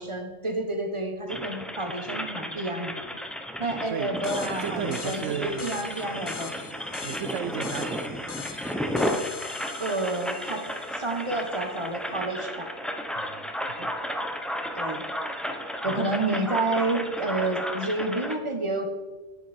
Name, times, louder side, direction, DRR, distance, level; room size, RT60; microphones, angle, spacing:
voice 1, 0.0-2.9 3.6-6.5 9.8-10.6 10.9-12.7 13.8-13.9 14.8-15.0 15.8-18.9, right 2 dB, 25° right, 1.2 m, -29 dB
sound 1, 1.3-18.4, equal, ahead, 0.4 m, -33 dB
voice 2, 3.9-4.2 4.6-5.9 7.0-8.3 13.1-13.9 15.8-16.2, right 10 dB, 80° right, 0.9 m, -35 dB
sound 2, 4.2-11.4, left 7 dB, 85° left, 1.4 m, -43 dB
10.0 x 9.3 x 4.4 m
omnidirectional pair, 1.3 m